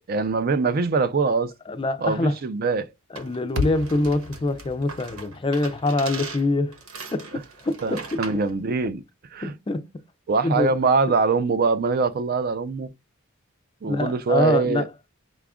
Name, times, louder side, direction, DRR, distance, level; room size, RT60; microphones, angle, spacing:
voice 1, 0.1-1.5 2.0-2.9 7.8-9.0 9.3-9.5 10.3-12.9 13.8-14.9, right 4 dB, 45° right, 0.4 m, -23 dB
voice 2, 1.7-2.3 3.1-6.7 7.1-8.2 9.4-9.9 10.4-10.7 13.9-14.9, left 2 dB, 25° left, 0.4 m, -25 dB
sound 1, 3.1-8.5, right 4 dB, 80° right, 1.1 m, -40 dB
sound 2, 3.6-7.8, left 2 dB, 60° right, 0.9 m, -35 dB
4.8 x 2.4 x 3.5 m
head